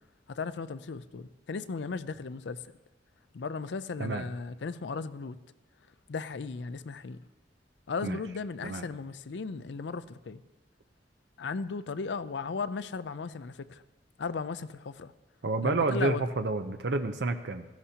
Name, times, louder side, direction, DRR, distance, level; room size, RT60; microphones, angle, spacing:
voice 1, 0.3-2.6 3.3-5.4 6.1-7.2 7.9-10.4 11.4-13.8 14.2-15.1 15.6-16.2, left 4 dB, 85° left, 14 dB, 0.5 m, -36 dB
voice 2, 15.4-17.6, right 3 dB, 75° right, 7 dB, 0.6 m, -29 dB
16.5 x 14.5 x 2.8 m, 1.1 s
head